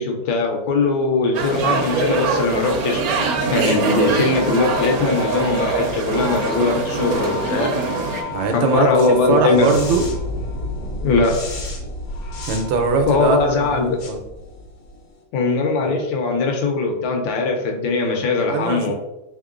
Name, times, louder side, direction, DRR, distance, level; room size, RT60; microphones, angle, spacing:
voice 1, 0.0-7.8 8.5-9.7 11.0-11.4 13.1-14.0 15.3-18.9, left 3 dB, 80° left, 2 dB, 1.4 m, -20 dB
sound 1, 1.3-8.2, right 4 dB, 70° right, 0.8 m, -23 dB
sound 2, 2.7-15.1, left 2 dB, 65° left, 1.0 m, -32 dB
voice 2, 8.3-10.0 12.5-13.8 14.1-14.2 18.5-18.8, right 4 dB, 85° right, 5 dB, 1.4 m, -21 dB
3.6 x 3.5 x 2.4 m, 0.95 s
omnidirectional pair, 2.1 m